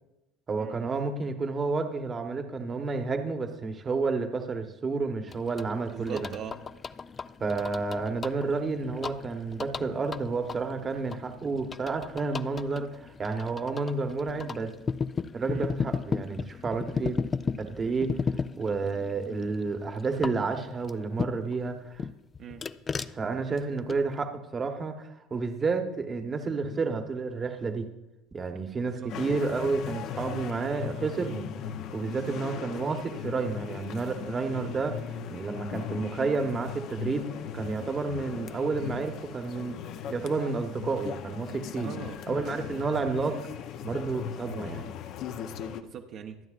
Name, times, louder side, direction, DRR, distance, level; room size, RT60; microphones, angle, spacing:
voice 1, 0.5-6.2 7.4-14.7 15.3-17.2 17.6-18.2 18.6-22.0 23.1-27.9 28.3-31.5 31.9-37.3 37.5-39.8 40.1-41.9 42.3-43.4 43.8-44.9, right 4 dB, 25° right, 5 dB, 1.0 m, -30 dB
sound 1, 5.3-21.6 22.0-24.2, left 5 dB, 25° left, 0.3 m, -36 dB
voice 2, 5.9-6.6 15.5-15.7 22.4-22.7 28.8-29.1 32.0-32.4 41.8-42.2 45.8-46.4, right 8 dB, 50° right, 3 dB, 0.8 m, -41 dB
sound 2, 29.1-45.8, left 8 dB, 55° left, 0.7 m, -38 dB
24.5 x 9.1 x 2.5 m, 0.96 s
cardioid pair, 135°, 0 cm